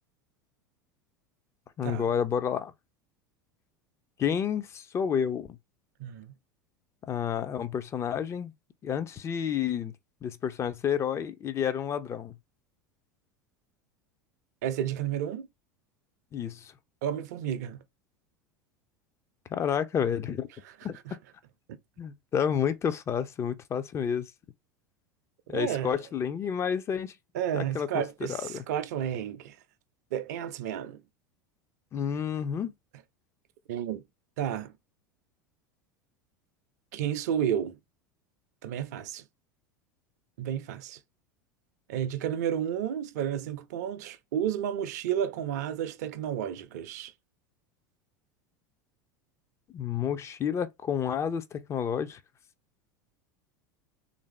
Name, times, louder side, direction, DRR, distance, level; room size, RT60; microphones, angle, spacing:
voice 1, 1.8-2.7 4.2-5.6 7.1-8.5 8.8-9.9 10.2-12.3 16.3-16.7 19.5-20.5 20.8-21.0 22.0-24.3 25.5-27.1 27.5-28.0 28.3-28.6 31.9-32.7 49.7-52.2, left 8 dB, 25° left, 0.5 m, -30 dB
voice 2, 6.0-6.4 14.6-15.5 17.0-17.8 21.1-21.2 21.7-21.8 25.5-25.9 27.3-29.6 30.1-31.0 33.7-34.0 34.4-34.7 36.9-37.8 38.6-39.2 40.4-41.0 41.9-47.1, right 9 dB, 55° right, 0.5 m, -31 dB
3.4 x 2.6 x 3.2 m
figure-of-eight pair, 80°, 11 cm